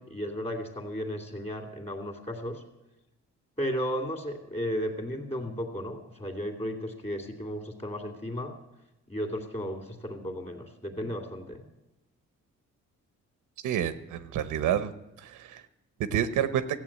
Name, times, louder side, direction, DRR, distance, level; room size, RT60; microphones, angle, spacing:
voice 1, 0.0-2.6 3.6-8.5 9.1-11.7, equal, 20° left, 6 dB, 2.5 m, -34 dB
voice 2, 13.6-14.9 15.2-15.6 16.0-16.7, right 9 dB, 85° right, 13 dB, 0.9 m, -28 dB
14.5 x 7.9 x 8.7 m, 0.93 s
cardioid pair, 90°, 30 cm